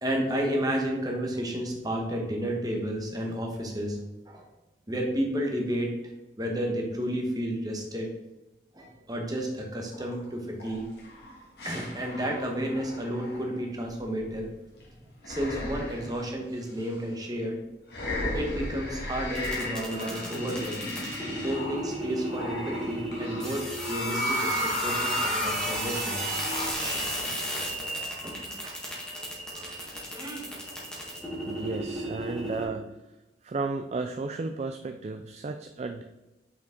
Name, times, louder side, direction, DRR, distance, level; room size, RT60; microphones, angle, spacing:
voice 1, 0.0-4.0 4.3-4.5 4.9-5.9 6.4-8.1 8.7-10.8 11.6-14.5 15.3-17.6 18.3-20.8 21.4-26.3 27.1-27.2 28.2-28.8 29.5-30.5, equal, 20° right, 1 dB, 1.2 m, -32 dB
sound 1, 9.9-10.2 10.6-14.8 15.2-16.3 16.8-16.9 17.9-26.7, left 1 dB, 70° left, 2.1 m, -35 dB
sound 2, 19.3-32.6, right 1 dB, 5° left, 1.6 m, -34 dB
voice 2, 31.5-32.9 33.4-36.0, right 3 dB, 40° right, 6 dB, 0.3 m, -33 dB
5.9 x 4.9 x 3.8 m, 1.0 s
head